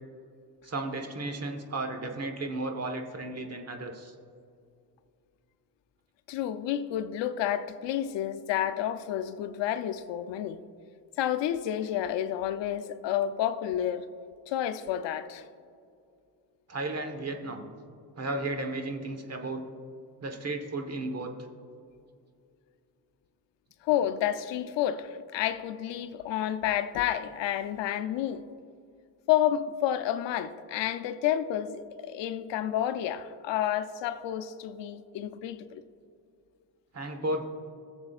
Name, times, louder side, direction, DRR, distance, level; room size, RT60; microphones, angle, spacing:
voice 1, 0.6-4.1 16.7-17.7 18.2-19.7 20.2-21.3 36.9-37.4, right 2 dB, 35° right, 1.2 m, -34 dB
voice 2, 6.3-10.6 11.2-14.1 14.5-15.5 23.8-28.4 29.3-35.8, left 11 dB, 80° left, 0.6 m, -30 dB
20.5 x 7.2 x 2.4 m
cardioid pair, 80°, 43 cm